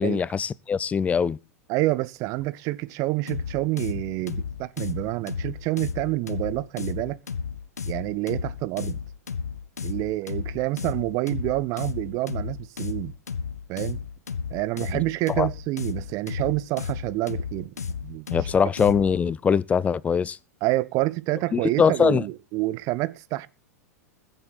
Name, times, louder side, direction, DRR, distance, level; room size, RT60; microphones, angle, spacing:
voice 1, 0.0-1.4 15.4-15.5 18.3-20.4 21.5-22.2, left 6 dB, 15° left, 0.6 m, -22 dB
voice 2, 1.7-7.2 7.9-9.0 9.8-13.2 13.7-14.0 14.5-17.7 18.0-18.3 20.6-23.5, right 18 dB, 40° right, 0.9 m, -28 dB
sound 1, 3.3-19.2, left 6 dB, 75° left, 1.3 m, -33 dB
21.0 x 8.2 x 4.1 m
figure-of-eight pair, 90°, 9 cm